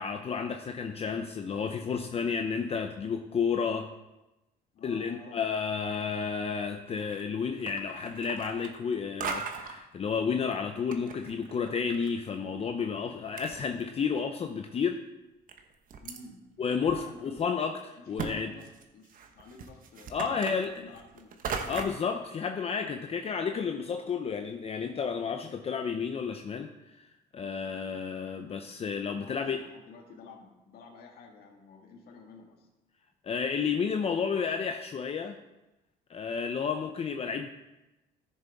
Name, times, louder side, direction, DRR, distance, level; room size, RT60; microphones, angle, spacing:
voice 1, 0.0-3.9 4.8-15.0 16.6-18.5 20.1-20.7 21.7-27.1 27.3-29.6 33.2-35.4 36.1-37.5, left 6 dB, 35° left, 5 dB, 0.7 m, -31 dB
voice 2, 4.7-5.5 16.0-17.7 17.9-21.9 29.1-32.7, left 4 dB, 65° left, 0 dB, 1.9 m, -51 dB
sound 1, 6.9-7.3 7.6-8.9 9.2-9.8 10.5-12.1 12.4-12.5 13.1-13.2 13.4-14.2 14.7-14.8 15.5-16.2 16.9-17.0 17.4-17.5 18.2-18.3 18.6-22.1, right 5 dB, 55° right, 1.1 m, -38 dB
14.0 x 6.8 x 3.6 m, 0.98 s
cardioid pair, 110°, 17 cm